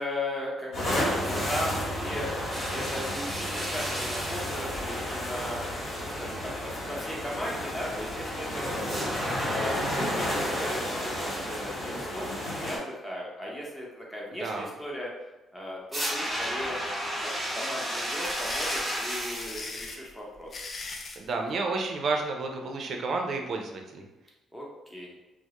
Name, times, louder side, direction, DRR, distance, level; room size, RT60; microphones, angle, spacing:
voice 1, 0.0-2.3 2.7-5.6 6.0-9.0 9.4-12.3 12.6-15.1 15.5-16.8 17.2-20.6 24.5-24.6 24.9-25.2, left 1 dB, 10° left, -4 dB, 0.7 m, -37 dB
sound 1, 0.7-12.8, equal, 65° left, 1.1 m, -32 dB
sound 2, 2.5-4.9 8.8-11.8 15.9-19.8, equal, 15° right, 1.0 m, -34 dB
sound 3, 17.9-21.2, left 3 dB, 45° left, 0.4 m, -39 dB
voice 2, 21.2-24.1, right 3 dB, 60° right, 2 dB, 0.4 m, -31 dB
2.2 x 2.0 x 2.9 m, 1.0 s
cardioid pair, 90°, 0 cm